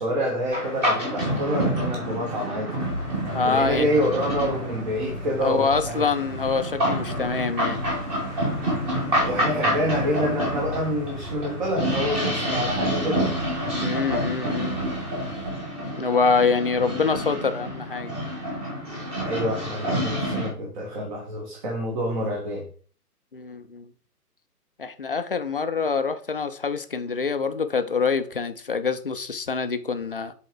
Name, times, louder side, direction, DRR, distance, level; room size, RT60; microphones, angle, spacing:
voice 1, 0.0-2.7 3.4-6.0 9.2-13.3 19.2-22.7, equal, 30° right, 1.5 m, -27 dB
sound 1, 0.5-20.5, equal, 15° right, 1.6 m, -28 dB
sound 2, 2.8-15.5, equal, 70° right, 3.2 m, -37 dB
voice 2, 3.3-3.9 5.4-7.8 13.8-14.8 15.9-18.1 23.3-23.9 24.8-30.3, left 5 dB, 35° left, 0.5 m, -25 dB
7.3 x 3.8 x 4.8 m
figure-of-eight pair, 135°, 48 cm